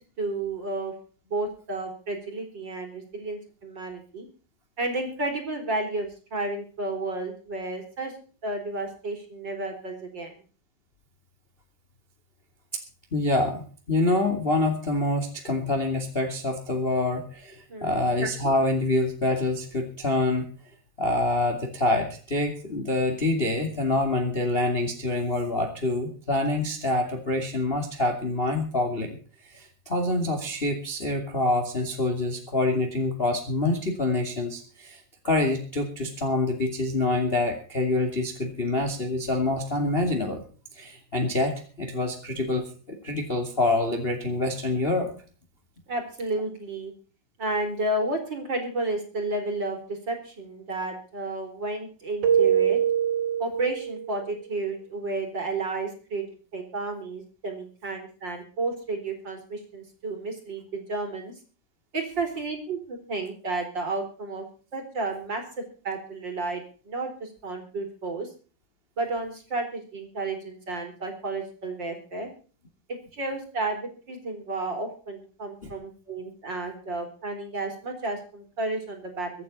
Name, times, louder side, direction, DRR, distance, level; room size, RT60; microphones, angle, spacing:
voice 1, 0.2-0.9 1.3-4.3 4.8-8.1 8.4-10.3 17.7-18.0 45.9-46.9 47.4-52.8 53.4-56.2 56.5-61.3 61.9-64.4 64.7-68.3 69.0-72.3 72.9-79.3, right 2 dB, 30° right, 4 dB, 4.5 m, -32 dB
voice 2, 13.1-20.5 21.0-40.4 40.7-45.1 75.6-75.7, left 2 dB, 20° left, 4 dB, 2.4 m, -26 dB
Keyboard (musical), 52.2-54.2, right 9 dB, 55° right, 2.2 m, -23 dB
24.5 x 9.5 x 4.1 m, 0.40 s
omnidirectional pair, 4.1 m